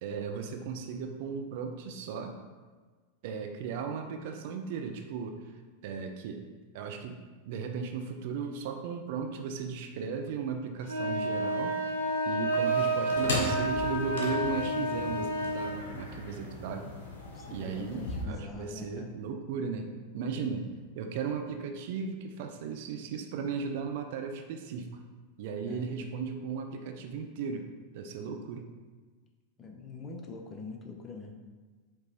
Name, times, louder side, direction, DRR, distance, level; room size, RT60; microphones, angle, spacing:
voice 1, 0.0-2.4 3.2-5.4 5.8-6.4 6.7-11.8 12.2-16.9 17.5-20.7 20.9-24.9 25.4-27.7 27.9-28.7, right 5 dB, 50° right, 5 dB, 0.4 m, -36 dB
sound 1, 10.8-15.8, right 1 dB, 85° right, 1.0 m, -30 dB
sound 2, 12.8-18.2, left 2 dB, 60° left, 0.8 m, -38 dB
voice 2, 17.3-19.1 20.3-20.5 25.7-25.8 29.6-31.5, left 4 dB, 25° left, 3 dB, 0.6 m, -44 dB
4.9 x 3.0 x 2.9 m, 1.4 s
figure-of-eight pair, 90°, 0 cm